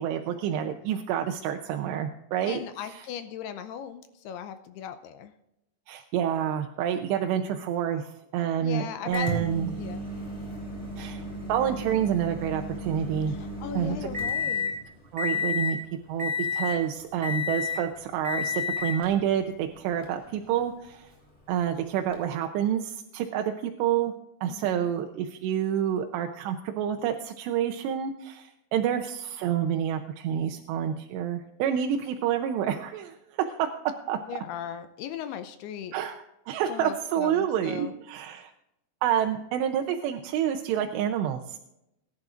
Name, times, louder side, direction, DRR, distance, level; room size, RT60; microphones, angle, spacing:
voice 1, 0.0-3.1 5.9-9.7 11.0-11.2 11.5-13.3 13.7-14.1 15.1-15.8 16.1-21.1 21.5-24.1 24.4-33.2 33.5-33.7 34.1-34.2 35.9-38.5 39.0-41.6, right 9 dB, 85° right, 4 dB, 2.9 m, -28 dB
voice 2, 2.5-5.3 8.6-10.0 13.3-14.8 24.5-24.9 34.3-35.9 36.7-37.9, left 8 dB, 80° left, 9 dB, 2.6 m, -38 dB
Microwave oven, 9.1-14.8 15.2-15.8 16.2-16.8 17.2-17.8 18.2-19.1 20.0-20.1 22.1-22.2, left 4 dB, 10° left, 2.5 m, -31 dB
21.0 x 11.0 x 2.5 m, 0.86 s
omnidirectional pair, 4.9 m